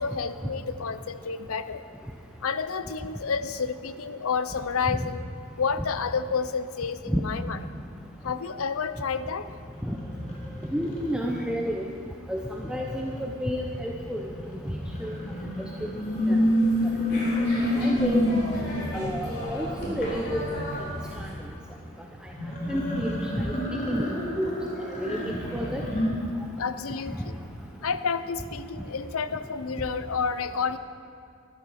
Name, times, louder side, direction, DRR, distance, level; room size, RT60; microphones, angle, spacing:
voice 1, 0.0-1.9 2.4-5.2 5.6-7.6 8.2-9.5 26.6-27.4 27.8-30.8, left 5 dB, 80° left, 12 dB, 0.6 m, -30 dB
sound 1, 9.4-11.4 12.4-19.2 22.3-26.1, left 1 dB, 35° left, 2.5 m, -29 dB
voice 2, 10.7-11.8 12.3-14.3 14.6-15.2 15.6-15.9 16.3-16.4 17.1-17.2 17.8-18.3 18.9-20.4 21.2-21.3 22.7-23.5 23.9-24.5 24.8-25.8, equal, 5° right, -1 dB, 0.8 m, -30 dB
sound 2, 15.9-21.4, equal, 50° left, 4.2 m, -35 dB
13.0 x 11.5 x 6.4 m, 2.5 s
head